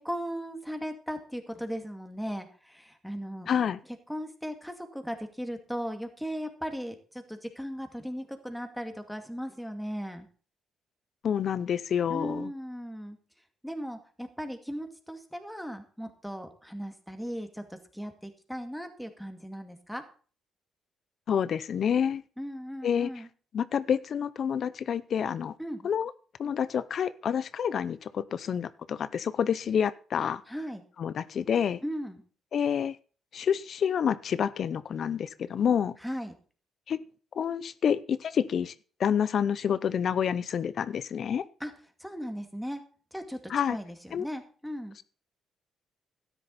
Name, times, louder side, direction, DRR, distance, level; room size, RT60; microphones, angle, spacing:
voice 1, 0.0-3.5 4.1-10.3 12.1-13.2 13.6-20.0 22.4-23.3 25.6-25.9 30.5-30.8 31.8-32.2 36.0-36.3 41.6-41.7 42.0-42.8 43.1-43.4 43.7-45.0, equal, ahead, 6 dB, 2.3 m, -37 dB
voice 2, 3.5-3.8 11.2-12.5 21.3-22.2 22.8-23.1 23.5-25.5 25.8-26.1 26.4-30.4 31.0-31.8 32.5-33.0 33.3-36.0 36.9-37.0 37.4-38.7 39.0-41.5 43.5-43.8 44.1-44.3, left 8 dB, 60° left, 16 dB, 0.6 m, -28 dB
13.0 x 10.0 x 4.1 m, 0.39 s
cardioid pair, 90°, 0 cm